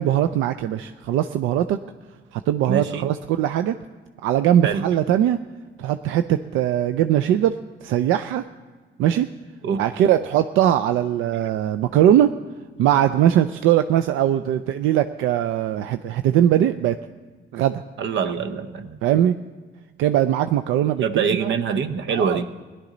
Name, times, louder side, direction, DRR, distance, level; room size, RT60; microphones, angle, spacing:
voice 1, 0.0-1.8 2.3-3.8 4.2-5.4 5.8-7.5 7.8-8.4 9.0-9.3 9.8-12.3 12.8-17.0 17.5-17.8 19.0-19.3 20.0-21.5 22.1-22.4, right 11 dB, 90° right, 10 dB, 0.4 m, -20 dB
voice 2, 2.7-3.1 4.6-4.9 9.6-9.8 18.0-19.0 21.0-22.5, right 6 dB, 70° right, 12 dB, 0.8 m, -24 dB
17.5 x 11.0 x 3.9 m, 1.4 s
cardioid pair, 90°, 20 cm